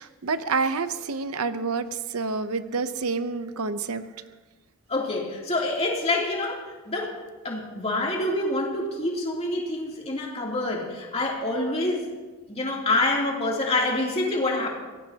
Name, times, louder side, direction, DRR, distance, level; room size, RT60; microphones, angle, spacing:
voice 1, 0.0-4.0, right 4 dB, 80° right, 11 dB, 0.8 m, -28 dB
voice 2, 4.9-7.2 7.4-12.1 12.5-14.7, left 2 dB, 30° left, -2 dB, 3.0 m, -26 dB
23.5 x 18.0 x 2.9 m, 1.3 s
head